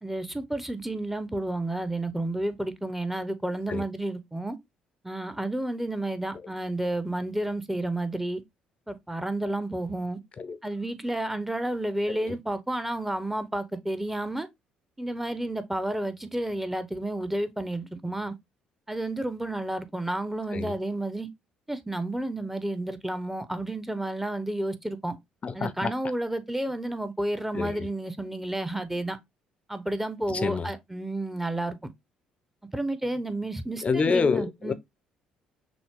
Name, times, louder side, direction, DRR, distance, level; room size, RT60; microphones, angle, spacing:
voice 1, 0.0-4.6 5.0-8.4 8.9-10.2 10.6-14.5 15.0-18.3 18.9-21.3 21.7-25.2 25.5-29.2 29.7-31.8 32.7-34.7, right 1 dB, 10° right, 0.9 m, -31 dB
voice 2, 25.4-25.9 27.5-27.9 30.3-30.7 33.8-34.7, left 5 dB, 40° left, 0.7 m, -27 dB
6.0 x 2.2 x 3.7 m
hypercardioid pair, 55°, 3 cm